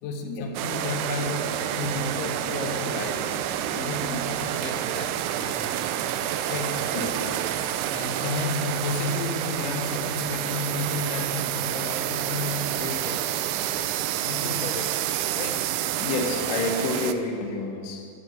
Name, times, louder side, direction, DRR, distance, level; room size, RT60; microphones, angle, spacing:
voice 1, 0.0-3.3 3.7-5.9 6.5-6.9 7.9-13.9 14.2-15.8, left 3 dB, 85° left, 4 dB, 3.2 m, -33 dB
sound 1, 0.6-17.1, right 11 dB, 85° right, 2.4 m, -29 dB
sound 2, 1.0-15.5, left 1 dB, 65° right, 4.7 m, -47 dB
voice 2, 6.9-7.4 16.0-18.1, left 3 dB, 65° left, 1 dB, 2.3 m, -29 dB
14.0 x 7.0 x 6.3 m, 2.2 s
omnidirectional pair, 5.1 m